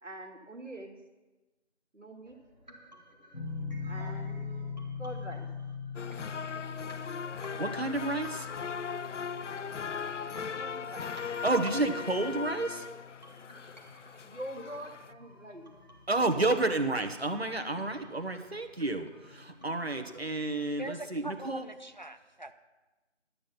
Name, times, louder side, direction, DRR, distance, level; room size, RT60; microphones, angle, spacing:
voice 1, 0.0-1.0 1.9-2.4 3.9-5.5 10.2-11.1 14.2-15.7, right 1 dB, 80° right, 3 dB, 2.1 m, -44 dB
sound 1, 2.3-20.3, equal, 35° right, 1.6 m, -55 dB
sound 2, 3.3-16.2, left 5 dB, 55° left, 3.1 m, -42 dB
sound 3, 6.0-15.1, left 6 dB, 80° left, 0.5 m, -39 dB
voice 2, 7.5-8.5 11.4-12.9 16.1-21.6, right 2 dB, 60° right, 6 dB, 1.3 m, -30 dB
voice 3, 20.8-22.5, right 1 dB, 40° left, 9 dB, 0.6 m, -42 dB
12.5 x 8.7 x 5.7 m, 1.1 s
figure-of-eight pair, 175°, 36 cm